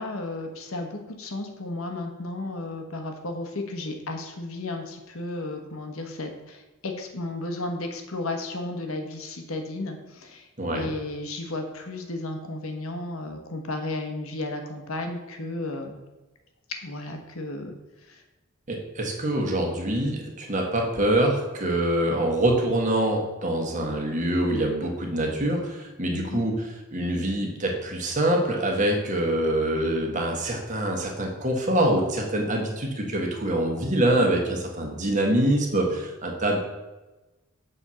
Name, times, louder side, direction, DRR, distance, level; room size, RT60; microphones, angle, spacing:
voice 1, 0.0-10.5 10.7-16.0 16.7-17.7 18.1-18.2 26.1-26.4, left 2 dB, 70° left, 4 dB, 1.2 m, -33 dB
voice 2, 10.6-10.9 18.7-26.6 26.9-36.6, right 1 dB, 35° right, 1 dB, 1.3 m, -25 dB
7.0 x 4.3 x 6.2 m, 1.1 s
head